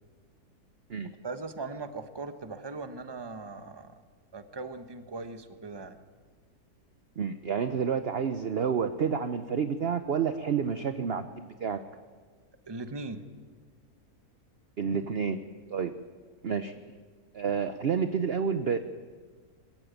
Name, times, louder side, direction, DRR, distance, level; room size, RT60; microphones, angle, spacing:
voice 1, 1.2-3.9 4.3-6.0 12.7-13.3, right 3 dB, 20° right, 9 dB, 1.0 m, -39 dB
voice 2, 7.2-11.8 14.8-15.4 15.7-15.9 16.4-16.7 17.3-18.8, right 6 dB, 50° right, 10 dB, 0.8 m, -29 dB
22.0 x 15.0 x 9.1 m, 1.5 s
omnidirectional pair, 1.7 m